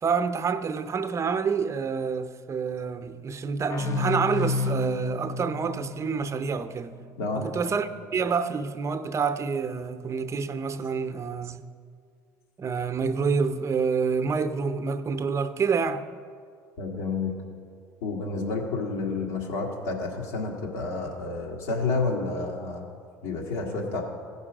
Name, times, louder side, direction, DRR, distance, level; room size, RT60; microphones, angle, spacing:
voice 1, 0.0-7.0 7.3-11.7 12.6-16.0, right 5 dB, 35° right, 0.6 m, -28 dB
sound 1, 3.7-7.1, left 4 dB, 35° left, 0.6 m, -31 dB
voice 2, 16.8-17.3 18.0-22.8 23.2-24.1, left 3 dB, 80° left, 1.9 m, -30 dB
16.0 x 5.4 x 5.0 m
hypercardioid pair, 75°, 9 cm